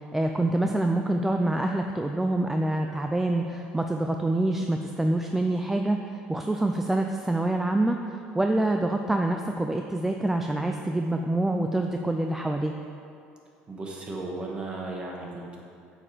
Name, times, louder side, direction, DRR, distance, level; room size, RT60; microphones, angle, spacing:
voice 1, 0.1-12.7, right 1 dB, 10° right, 3 dB, 0.4 m, -26 dB
voice 2, 13.7-15.6, right 2 dB, 25° right, -1 dB, 1.7 m, -35 dB
8.7 x 7.6 x 5.0 m, 2.5 s
cardioid pair, 140°, 4 cm